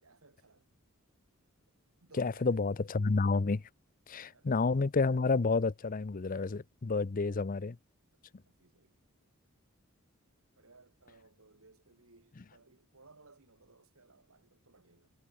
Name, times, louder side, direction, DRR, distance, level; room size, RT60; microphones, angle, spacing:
voice 1, 0.0-0.7 2.0-2.5 4.2-4.5 8.4-8.9 10.6-15.1, right 3 dB, 85° right, 2.7 m, -62 dB
voice 2, 2.2-3.6 4.1-7.8, left 4 dB, 40° left, 0.6 m, -30 dB
head